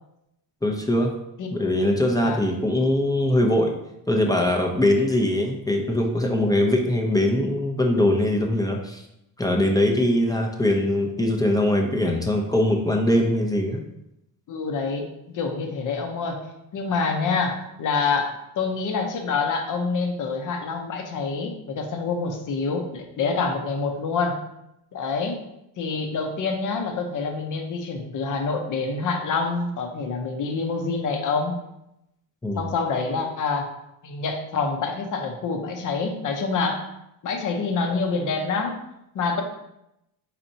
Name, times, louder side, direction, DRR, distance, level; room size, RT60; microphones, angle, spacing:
voice 1, 0.6-1.1 1.5-3.7 4.1-9.0 9.4-13.8 32.4-32.7, left 1 dB, 10° left, 1 dB, 0.6 m, -22 dB
voice 2, 14.5-16.4 16.7-24.4 24.9-25.4 25.8-31.6 32.6-33.7 34.0-36.9 37.2-38.8 39.1-39.4, left 4 dB, 50° left, 4 dB, 0.8 m, -26 dB
4.3 x 4.2 x 2.7 m, 0.84 s
cardioid pair, 110°, 41 cm